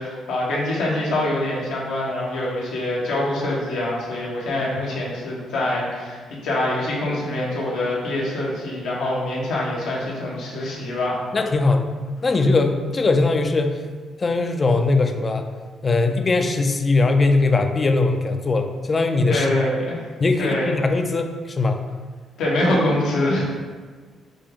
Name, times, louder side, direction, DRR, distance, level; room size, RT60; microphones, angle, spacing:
voice 1, 0.0-11.2 19.3-20.0 20.4-20.7 22.4-23.4, left 1 dB, 85° left, -5 dB, 1.2 m, -24 dB
voice 2, 11.3-11.9 12.2-13.8 14.2-15.5 15.8-19.5 20.2-21.8, left 3 dB, 30° left, 6 dB, 0.4 m, -20 dB
5.2 x 2.3 x 3.5 m, 1.5 s
cardioid pair, 90°, 0 cm